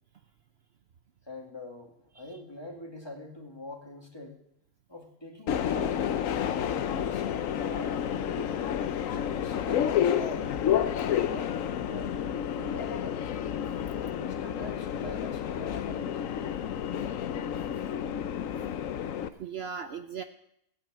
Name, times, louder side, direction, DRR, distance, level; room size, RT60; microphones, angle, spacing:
voice 1, 1.2-4.4 4.9-6.1 6.7-7.3 7.6-8.6 9.0-10.6 11.0-11.6 11.9-13.3 13.9-16.2, left 1 dB, 20° left, 2 dB, 2.1 m, -44 dB
Subway metro underground, 5.5-19.3, left 9 dB, 80° left, 1.1 m, -30 dB
voice 2, 18.5-20.2, right 7 dB, 55° right, 8 dB, 0.9 m, -41 dB
17.0 x 8.9 x 8.5 m, 0.77 s
omnidirectional pair, 1.4 m